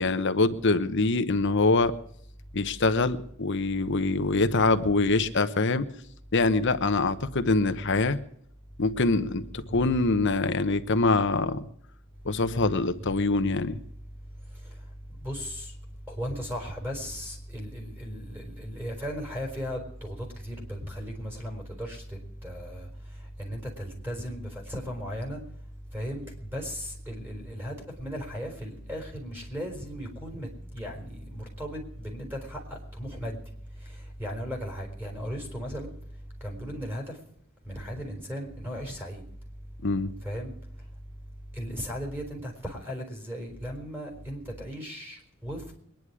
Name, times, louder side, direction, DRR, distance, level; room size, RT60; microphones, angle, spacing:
voice 1, 0.0-1.9 2.5-5.9 6.3-8.2 8.8-11.6 12.2-13.8 39.8-40.1, left 3 dB, 55° left, 11 dB, 1.0 m, -24 dB
voice 2, 15.2-15.6 16.1-20.2 20.4-22.0 22.4-22.9 23.4-25.4 25.9-26.2 26.5-30.5 30.7-32.6 33.0-33.4 34.2-35.9 36.4-37.1 37.7-39.2 40.2-40.5 41.6-45.6, equal, 10° right, 1 dB, 4.6 m, -36 dB
23.0 x 10.5 x 4.8 m, 0.68 s
head